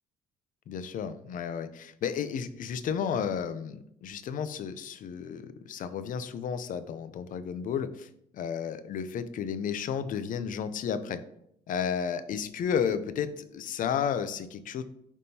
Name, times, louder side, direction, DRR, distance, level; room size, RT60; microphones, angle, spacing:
voice 1, 0.7-11.2 11.7-14.8, left 7 dB, 50° left, 12 dB, 0.5 m, -32 dB
9.4 x 3.6 x 2.8 m, 0.74 s
cardioid pair, 110°, 17 cm